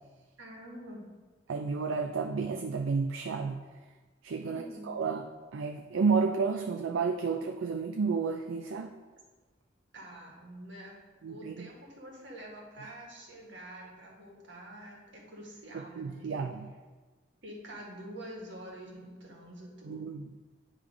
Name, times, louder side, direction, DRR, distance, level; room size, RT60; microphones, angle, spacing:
voice 1, 0.4-1.1 4.5-4.9 9.9-11.0 11.3-16.4 17.4-20.0, right 1 dB, 65° right, -2 dB, 1.6 m, -47 dB
voice 2, 1.5-3.6 4.2-5.3 5.5-8.9 11.2-11.7 15.7-16.7 19.8-20.4, right 5 dB, 85° right, 4 dB, 0.4 m, -31 dB
9.4 x 3.3 x 4.8 m, 1.3 s
head